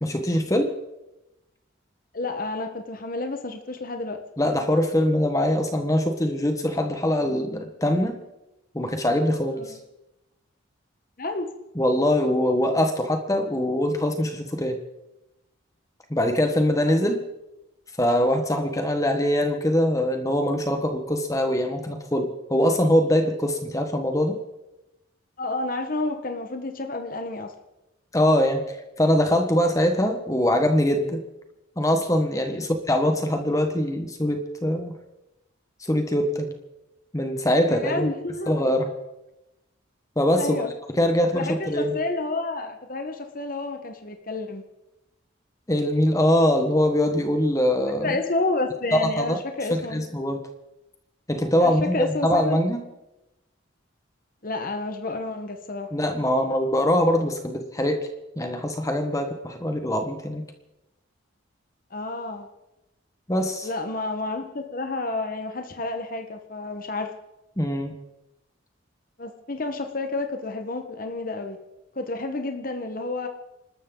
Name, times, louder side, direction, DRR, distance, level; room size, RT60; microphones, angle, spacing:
voice 1, 0.0-0.7 4.4-8.2 8.7-9.8 11.7-14.8 16.1-17.2 18.0-24.4 28.1-28.6 29.0-31.2 31.8-35.0 35.8-36.5 37.1-38.1 38.5-38.9 40.2-40.6 41.0-41.9 45.7-48.1 49.2-49.4 49.7-50.4 51.3-52.8 55.9-58.1 58.4-60.4 63.3-63.7 67.6-67.9, left 1 dB, 15° left, 5 dB, 1.4 m, -23 dB
voice 2, 2.1-4.2 9.6-9.7 11.2-11.5 17.0-17.1 25.4-27.5 32.5-32.6 37.7-38.9 40.4-40.7 41.3-44.6 48.0-50.0 51.6-52.6 54.4-55.9 61.9-62.5 63.6-67.1 69.2-71.6 71.9-73.3, left 2 dB, 45° left, 5 dB, 1.3 m, -30 dB
27.5 x 13.0 x 3.9 m, 0.95 s
head